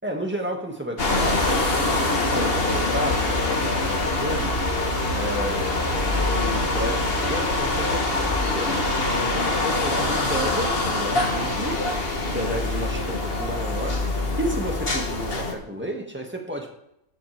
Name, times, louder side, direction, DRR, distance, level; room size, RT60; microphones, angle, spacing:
voice 1, 0.0-4.5 5.1-11.8 12.3-14.0 14.4-16.7, equal, 10° right, 1 dB, 2.1 m, -32 dB
sound 1, 1.0-15.5, left 2 dB, 45° left, 1.8 m, -24 dB
14.0 x 10.5 x 3.6 m, 0.81 s
omnidirectional pair, 1.4 m